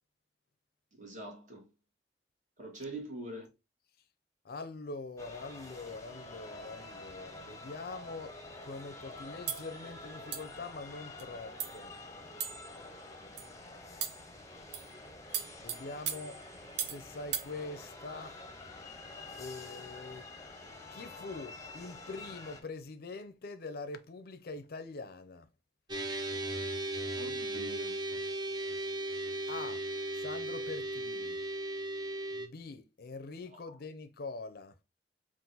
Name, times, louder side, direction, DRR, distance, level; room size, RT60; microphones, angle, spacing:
voice 1, 1.0-1.7 2.6-3.5 27.1-28.0, right 2 dB, 45° right, 1.6 m, -43 dB
voice 2, 4.4-8.3 8.6-11.9 15.6-16.4 16.8-18.4 19.4-20.2 20.9-25.5 29.5-29.8 30.2-31.4 32.3-34.8, left 3 dB, 60° left, 0.5 m, -44 dB
sound 1, 5.2-22.6, left 2 dB, 20° left, 0.7 m, -48 dB
sound 2, 9.5-9.7 10.3-10.6 11.2-11.3 11.6-11.8 12.4-12.8 13.4-13.5 14.0-14.3 14.7-14.9 15.3-17.0 17.3-17.5, right 8 dB, 70° right, 0.6 m, -38 dB
sound 3, 25.9-32.5, right 1 dB, 25° right, 0.6 m, -36 dB
3.8 x 2.5 x 3.9 m
head